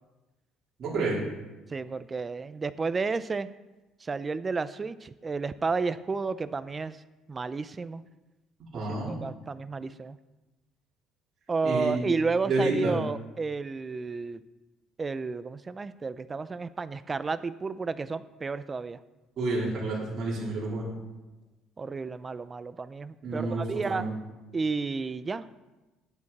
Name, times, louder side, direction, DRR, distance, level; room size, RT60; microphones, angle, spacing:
voice 1, 0.8-1.2 8.7-9.1 11.6-12.0 12.5-13.0 19.4-20.9 23.2-24.2, right 2 dB, 40° right, -6 dB, 3.7 m, -29 dB
voice 2, 1.7-3.5 4.0-7.0 7.3-8.0 8.9-10.2 11.5-14.4 15.0-19.0 21.8-24.0 24.5-25.5, right 4 dB, 20° right, 14 dB, 0.4 m, -31 dB
12.0 x 8.7 x 4.2 m, 1.1 s
cardioid pair, 150°, 0 cm